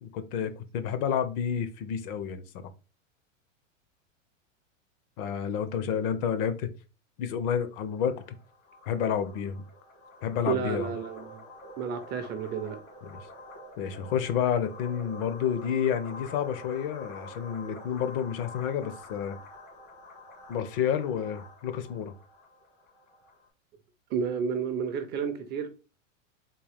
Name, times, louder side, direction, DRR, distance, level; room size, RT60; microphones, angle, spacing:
voice 1, 0.0-2.4 5.2-6.7 7.2-8.2 8.9-9.6 10.2-10.9 13.0-13.2 13.8-19.4 20.5-22.1, left 8 dB, 45° left, 0.6 m, -30 dB
sound 1, 7.7-23.5, left 2 dB, 75° left, 1.7 m, -48 dB
voice 2, 10.4-11.4 11.8-12.8 24.1-25.7, right 7 dB, 25° right, 0.4 m, -31 dB
3.7 x 2.3 x 3.3 m
hypercardioid pair, 120°, 39 cm